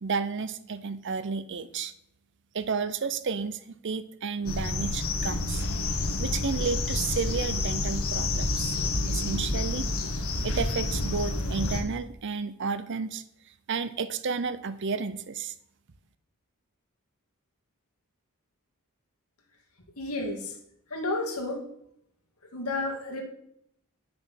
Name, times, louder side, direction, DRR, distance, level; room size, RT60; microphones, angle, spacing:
voice 1, 0.0-1.9 2.5-5.6 6.2-8.8 9.0-9.9 10.4-13.2 13.7-15.5, right 5 dB, 55° right, 13 dB, 0.7 m, -32 dB
sound 1, 4.5-11.8, left 2 dB, 65° left, 1.5 m, -29 dB
voice 2, 20.0-20.5 20.9-21.6 22.5-23.2, left 2 dB, 90° left, 1 dB, 2.3 m, -31 dB
9.6 x 6.3 x 5.9 m, 0.73 s
head